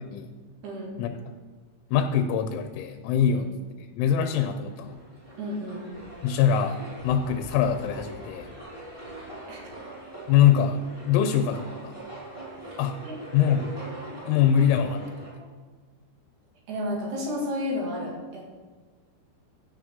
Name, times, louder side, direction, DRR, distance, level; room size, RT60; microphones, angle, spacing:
voice 1, 0.6-1.0 3.3-3.4 5.4-5.9 9.5-9.6 12.6-12.8 13.0-13.1 16.7-18.5, left 1 dB, 65° right, -3 dB, 4.1 m, -32 dB
voice 2, 1.9-3.5 3.9-5.0 6.2-8.5 10.3-12.0 12.8-13.0 13.3-13.7 14.3-15.0, left 8 dB, 85° left, 7 dB, 3.1 m, -23 dB
sound 1, 4.6-15.3, right 1 dB, 10° right, 4.0 m, -42 dB
16.0 x 9.6 x 3.7 m, 1.4 s
omnidirectional pair, 5.4 m